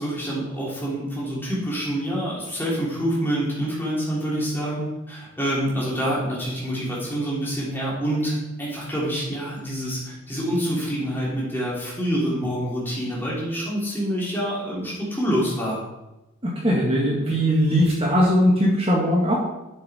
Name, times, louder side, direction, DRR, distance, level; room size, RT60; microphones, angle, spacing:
voice 1, 0.0-15.8, equal, 10° left, -6 dB, 3.2 m, -26 dB
voice 2, 16.4-19.4, equal, 30° right, -3 dB, 1.8 m, -20 dB
11.0 x 6.8 x 4.4 m, 1.0 s
head